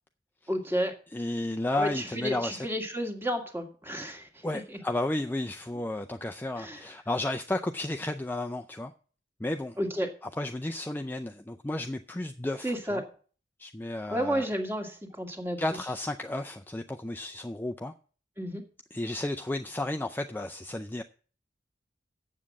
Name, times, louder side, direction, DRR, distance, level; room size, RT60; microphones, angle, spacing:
voice 1, 0.5-0.9 1.7-4.3 6.6-6.8 9.8-10.1 12.6-13.0 14.1-15.6 18.4-18.6, equal, 15° right, 1.8 m, -31 dB
voice 2, 1.1-2.7 4.4-8.9 9.4-9.8 10.2-13.0 13.6-14.5 15.6-17.9 18.9-21.0, left 1 dB, 10° left, 0.4 m, -33 dB
7.5 x 7.4 x 8.4 m
head